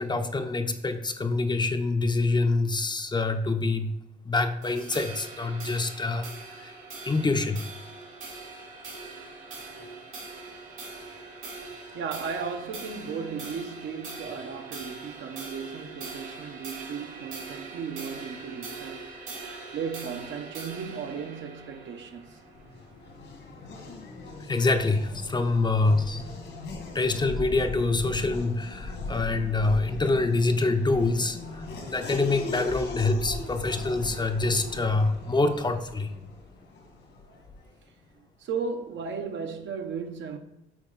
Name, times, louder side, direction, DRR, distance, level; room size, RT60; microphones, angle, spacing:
voice 1, 0.0-3.9 4.2-6.3 6.5-6.7 7.0-7.6 24.5-26.2 26.9-36.1, left 3 dB, 20° left, 0.6 m, -26 dB
sound 1, 4.6-23.2, right 3 dB, 85° right, 2.3 m, -42 dB
voice 2, 11.9-19.1 19.7-22.4 38.2-40.4, right 6 dB, 70° right, 0.9 m, -35 dB
Race car auto racing / Accelerating revving vroom, 22.2-37.8, left 3 dB, 70° left, 1.7 m, -38 dB
7.2 x 4.1 x 3.9 m
cardioid pair, 90°, 20 cm